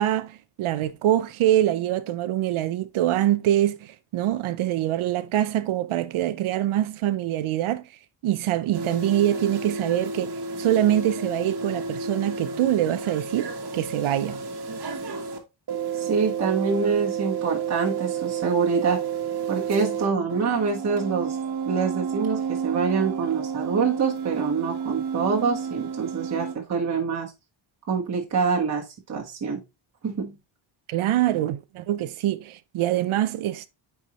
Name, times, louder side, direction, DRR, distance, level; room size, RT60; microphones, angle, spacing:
voice 1, 0.0-7.8 8.2-14.4 30.9-33.7, right 12 dB, 80° right, 0.8 m, -24 dB
sound 1, 8.7-15.4 15.7-20.0 20.3-26.5, right 6 dB, 50° right, 1.6 m, -31 dB
voice 2, 15.9-19.0 19.5-21.4 21.6-27.3 27.9-29.6 30.0-30.3, right 5 dB, 35° right, 1.5 m, -25 dB
9.1 x 4.7 x 3.0 m
wide cardioid pair, 175°, 48 cm